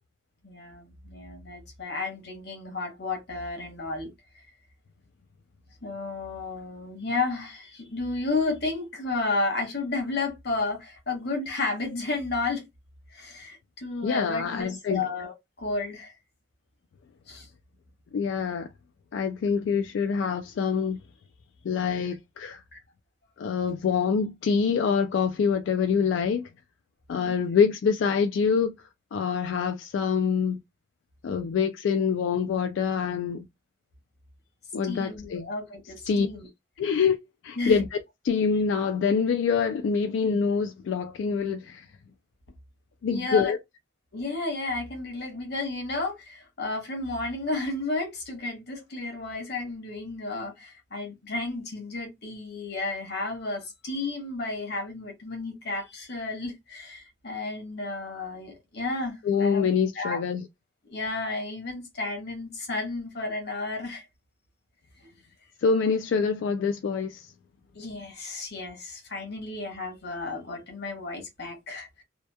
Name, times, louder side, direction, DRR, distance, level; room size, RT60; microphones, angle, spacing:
voice 1, 0.4-4.1 5.8-12.7 13.1-16.1 17.3-17.5 22.7-22.8 27.2-27.4 34.8-36.5 37.6-37.8 43.1-43.5 44.1-59.7 59.9-60.2 60.8-64.0 65.0-65.1 67.7-72.0, left 3 dB, 55° left, 1.0 m, -32 dB
voice 2, 14.0-15.0 18.1-18.7 19.1-21.0 21.7-22.6 23.4-26.4 27.1-28.7 29.1-30.6 31.2-33.4 34.7-35.5 36.1-36.3 36.8-37.2 37.4-38.0 38.2-41.8 43.0-43.6 59.3-60.4 65.6-67.2, left 6 dB, 75° left, 0.3 m, -25 dB
2.8 x 2.2 x 2.2 m
head